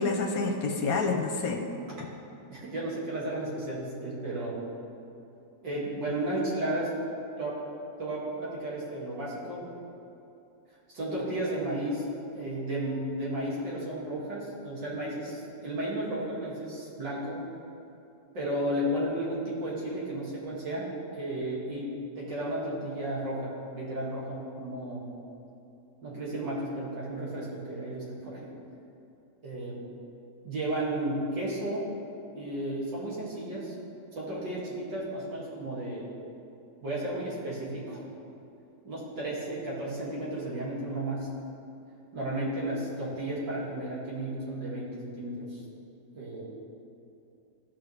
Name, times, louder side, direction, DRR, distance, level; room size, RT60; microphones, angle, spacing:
voice 1, 0.0-1.6, left 3 dB, 65° left, 3 dB, 1.0 m, -28 dB
voice 2, 2.5-4.5 5.6-6.9 7.4-7.6 8.0-9.7 10.9-12.0 12.3-17.4 18.3-20.9 21.1-25.1 26.0-28.5 29.4-29.9 30.4-31.9 32.3-33.7 34.1-36.1 36.8-38.0 38.8-41.3 42.1-45.6 46.1-46.5, right 1 dB, 80° right, -7 dB, 3.0 m, -33 dB
16.5 x 5.7 x 3.3 m, 2.8 s
omnidirectional pair, 1.9 m